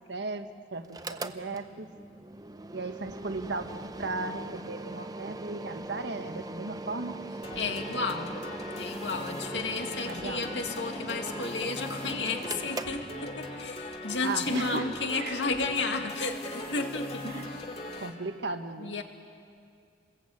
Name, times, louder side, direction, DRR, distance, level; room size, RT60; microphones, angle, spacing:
voice 1, 0.1-1.9 2.7-7.2 10.1-10.5 14.2-15.3 17.2-17.5 18.0-19.0, right 3 dB, 70° right, 8 dB, 1.4 m, -36 dB
Mechanical fan, 0.8-13.7, right 2 dB, 20° right, 0.8 m, -41 dB
sound 1, 7.4-18.1, left 1 dB, 35° left, 2.4 m, -40 dB
voice 2, 7.5-8.4 8.8-18.1 18.8-19.0, left 3 dB, 80° left, 4 dB, 2.4 m, -33 dB
29.0 x 21.5 x 8.6 m, 2.3 s
head